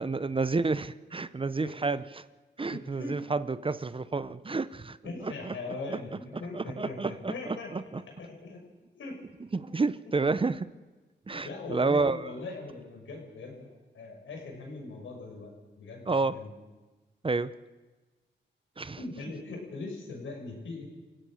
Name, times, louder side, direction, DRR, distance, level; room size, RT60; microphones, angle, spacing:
voice 1, 0.0-2.2 2.6-5.6 5.9-6.0 6.5-8.0 9.5-10.7 11.3-12.3 16.1-16.4 17.2-17.5 18.8-19.0, right 3 dB, 25° right, 15 dB, 0.8 m, -30 dB
voice 2, 1.6-1.9 2.7-3.1 5.0-8.6 8.9-9.2 11.3-16.5 19.0-20.9, left 3 dB, 85° left, 1 dB, 6.5 m, -41 dB
29.0 x 17.0 x 6.5 m, 1.3 s
cardioid pair, 85°, 19 cm